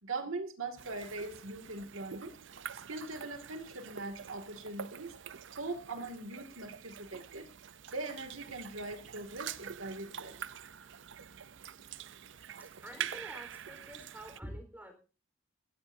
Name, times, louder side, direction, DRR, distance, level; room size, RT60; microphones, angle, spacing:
voice 1, 0.0-2.4 2.7-5.2 5.6-7.5 7.9-10.4, right 2 dB, 85° right, 6 dB, 2.4 m, -41 dB
sound 1, 0.8-14.4, right 8 dB, 60° right, 0.6 m, -46 dB
voice 2, 12.6-14.9, equal, 10° right, 5 dB, 4.3 m, -47 dB
19.5 x 16.5 x 2.7 m, 0.35 s
head